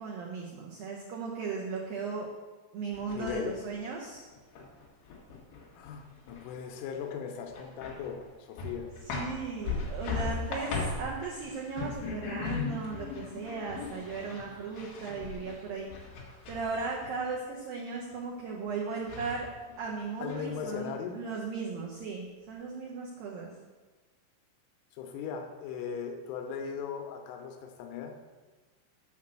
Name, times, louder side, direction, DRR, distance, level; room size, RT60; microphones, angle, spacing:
voice 1, 0.0-2.3 2.7-4.2 9.1-15.9 16.5-19.5 19.8-23.5, right 4 dB, 85° right, -2 dB, 2.0 m, -37 dB
sound 1, 2.9-3.7 4.1-6.6 6.9-7.0 7.5-8.3 8.6-17.1 18.7-18.8 19.1-19.9 20.3-20.9, left 4 dB, 60° left, 2.9 m, -38 dB
voice 2, 3.1-3.6 5.8-8.9 20.2-21.2 24.9-28.1, left 7 dB, 85° left, 4 dB, 3.4 m, -38 dB
7.5 x 5.9 x 7.4 m, 1.3 s
omnidirectional pair, 5.6 m